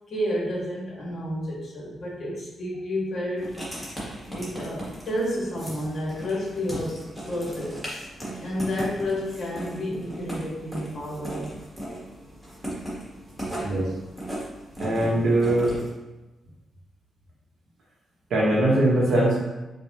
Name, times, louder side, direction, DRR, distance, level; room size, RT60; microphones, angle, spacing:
voice 1, 0.1-3.5 4.3-7.0 7.3-7.8 8.3-11.5 13.5-13.8, left 1 dB, 50° left, -4 dB, 1.4 m, -30 dB
Writing, 3.4-15.9, right 1 dB, ahead, 1.3 m, -37 dB
voice 2, 14.8-15.7 18.3-19.4, right 1 dB, 85° right, -4 dB, 1.1 m, -21 dB
5.0 x 2.3 x 2.8 m, 1.1 s
cardioid pair, 105°, 0 cm